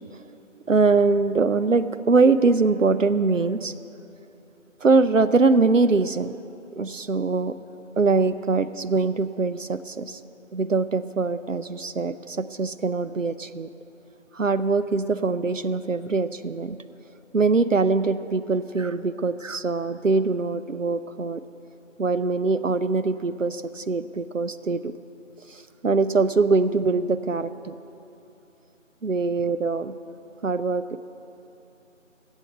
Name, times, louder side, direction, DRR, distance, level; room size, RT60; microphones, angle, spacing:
voice 1, 0.7-3.7 4.8-6.3 6.8-7.6 8.0-10.2 10.5-13.7 14.3-16.8 17.3-21.4 22.0-24.9 25.5-27.8 29.0-29.9 30.4-31.0, right 4 dB, 75° right, 12 dB, 0.7 m, -23 dB
15.0 x 8.4 x 7.9 m, 2.9 s
figure-of-eight pair, 175°, 39 cm